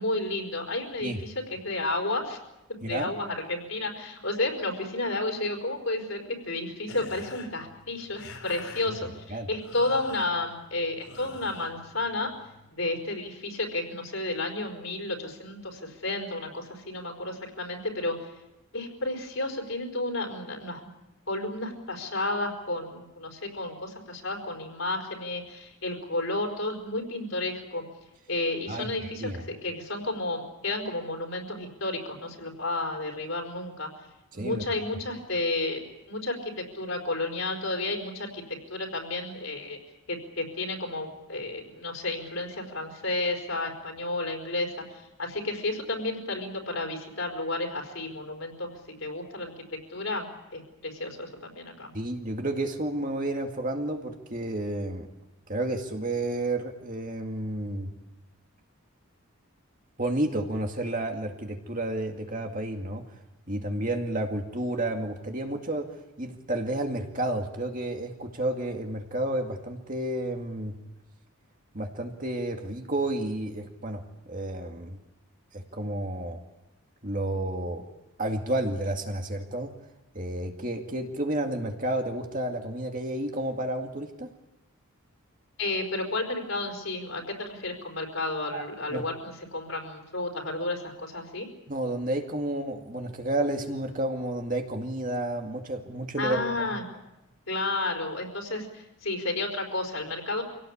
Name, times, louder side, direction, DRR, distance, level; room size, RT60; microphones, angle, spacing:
voice 1, 0.0-2.4 2.7-12.3 12.7-18.3 18.7-20.9 21.3-27.8 28.3-33.9 34.3-35.8 36.1-39.8 40.1-48.7 49.0-51.9 85.6-91.5 96.2-96.8 97.5-100.4, left 2 dB, 65° left, 2 dB, 4.8 m, -32 dB
sound 1, 6.8-12.7, left 3 dB, 80° left, 4.2 m, -46 dB
voice 2, 28.7-29.4 34.3-34.7 51.9-55.1 55.5-57.9 60.0-63.0 63.5-65.9 66.2-70.8 71.7-75.0 75.5-76.4 77.0-77.8 78.2-79.7 80.1-84.3 88.5-89.0 91.7-96.4 96.7-96.8, right 1 dB, 35° right, 3 dB, 2.2 m, -31 dB
26.0 x 17.5 x 8.6 m, 0.97 s
head